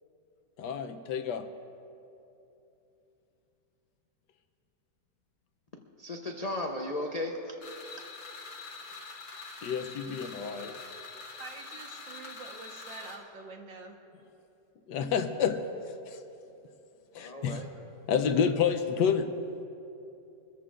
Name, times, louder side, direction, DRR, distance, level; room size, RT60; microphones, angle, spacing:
voice 1, 0.6-1.5 9.6-10.7 14.9-16.2 17.1-17.6 18.1-19.3, left 7 dB, 70° left, 8 dB, 1.3 m, -29 dB
voice 2, 6.0-7.5 17.1-17.7, left 1 dB, 50° left, 1 dB, 0.4 m, -35 dB
sound 1, 7.6-13.2, left 3 dB, 90° left, 2.7 m, -45 dB
voice 3, 11.4-14.0, right 4 dB, 80° right, 2 dB, 2.0 m, -46 dB
24.5 x 14.5 x 2.5 m, 2.8 s
omnidirectional pair, 2.0 m